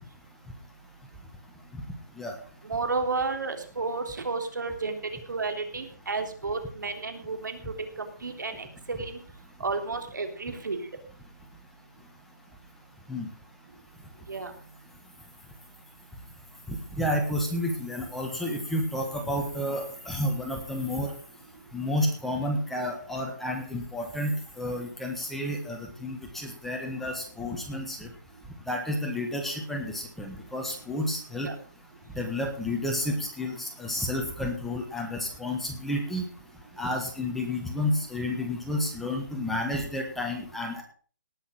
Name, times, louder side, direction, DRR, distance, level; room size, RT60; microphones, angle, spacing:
voice 1, 2.6-5.0 5.3-9.2 9.6-10.9 14.3-14.5 31.4-31.5, right 4 dB, 75° right, 6 dB, 3.4 m, -32 dB
voice 2, 17.0-21.1 21.7-24.3 24.6-28.1 28.7-31.5 32.1-36.2 36.8-40.8, left 1 dB, ahead, 1 dB, 1.4 m, -31 dB
18.5 x 6.6 x 6.2 m, 0.43 s
hypercardioid pair, 165°, 10 cm